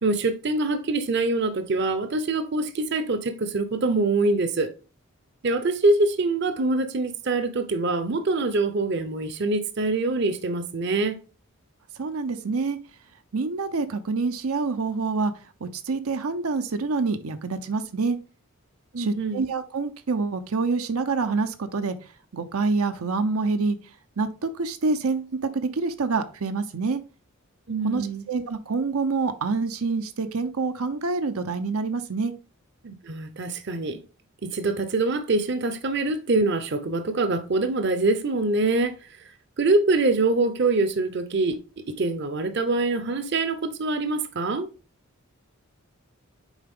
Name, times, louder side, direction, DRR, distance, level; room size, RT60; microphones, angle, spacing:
voice 1, 0.0-4.7 5.4-11.2 18.9-19.4 27.7-28.2 32.8-34.0 34.4-39.3 39.6-41.6 41.9-44.7, right 2 dB, 50° right, 0.7 m, -24 dB
voice 2, 11.9-12.8 13.3-15.3 15.6-18.2 19.0-22.0 22.3-23.8 24.2-27.0 27.8-32.3, right 4 dB, 85° right, 0.7 m, -26 dB
7.2 x 4.8 x 3.6 m
head